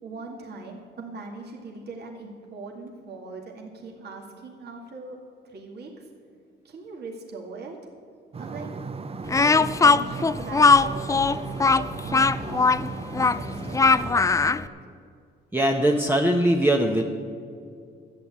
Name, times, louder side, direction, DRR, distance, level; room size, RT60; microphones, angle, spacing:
voice 1, 0.0-6.1 6.6-7.8 8.4-8.7 9.3-12.7 13.1-14.7, right 3 dB, 55° right, 0 dB, 2.0 m, -41 dB
sound 1, 8.3-14.1, right 4 dB, 30° right, 0.7 m, -35 dB
Speech, 9.3-14.6, left 4 dB, 15° left, 0.4 m, -19 dB
voice 2, 15.5-17.0, right 1 dB, 10° right, 1 dB, 0.9 m, -21 dB
12.0 x 8.4 x 8.5 m, 2.3 s
cardioid pair, 90°, 20 cm